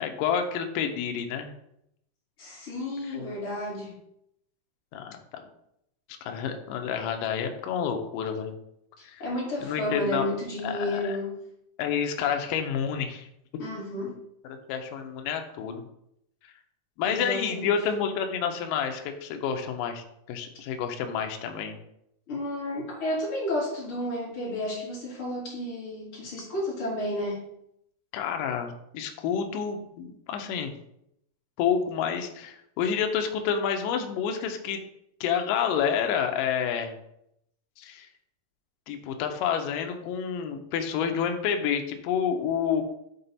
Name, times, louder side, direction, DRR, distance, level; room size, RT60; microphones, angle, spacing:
voice 1, 0.0-1.5 4.9-5.4 6.2-8.6 9.0-9.2 9.6-10.3 10.6-11.2 11.8-13.3 14.4-15.8 17.0-21.8 28.1-30.7 31.6-34.8 35.2-36.9 37.8-38.1 38.9-42.8, left 7 dB, 80° left, 5 dB, 2.0 m, -29 dB
voice 2, 2.4-4.0 9.2-11.3 13.6-14.2 17.0-17.7 22.3-27.4, left 1 dB, 40° left, -6 dB, 2.6 m, -31 dB
6.7 x 3.8 x 4.2 m, 0.77 s
omnidirectional pair, 4.6 m